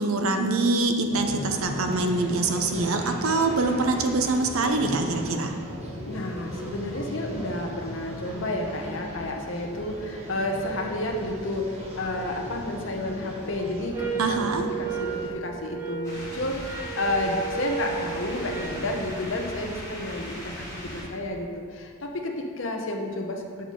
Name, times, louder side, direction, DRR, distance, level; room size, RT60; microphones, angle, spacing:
voice 1, 0.0-5.5 14.2-14.6, right 3 dB, 75° right, 5 dB, 0.7 m, -24 dB
sound 1, 1.1-15.3, equal, 30° right, 1.0 m, -38 dB
voice 2, 6.1-14.5 14.8-23.7, left 1 dB, 60° left, 2 dB, 0.8 m, -31 dB
sound 2, 13.9-18.9, right 9 dB, 10° right, 0.6 m, -34 dB
sound 3, 16.0-21.0, equal, 15° left, 1.9 m, -38 dB
6.9 x 6.7 x 3.8 m, 2.1 s
head